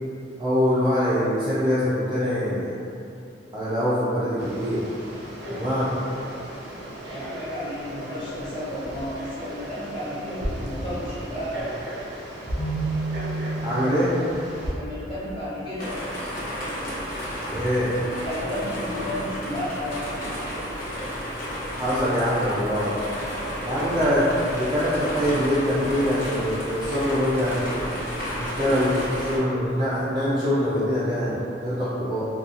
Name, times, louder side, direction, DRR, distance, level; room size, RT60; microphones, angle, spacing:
voice 1, 0.4-2.7 3.5-4.9 5.5-5.9 13.6-14.1 16.8-16.9 17.5-17.9 21.8-23.0 23.6-27.8 28.4-32.3, equal, 25° right, -11 dB, 0.4 m, -24 dB
Frog, 4.4-14.7, equal, 75° right, 0.5 m, -35 dB
voice 2, 7.1-11.8 14.7-16.4 17.9-20.2, left 1 dB, 25° left, -11 dB, 0.9 m, -33 dB
Keyboard (musical), 12.6-14.4, right 2 dB, 80° left, 1.0 m, -30 dB
sound 1, 15.8-29.4, equal, 50° left, 0.8 m, -32 dB
2.7 x 2.3 x 2.4 m, 2.8 s
head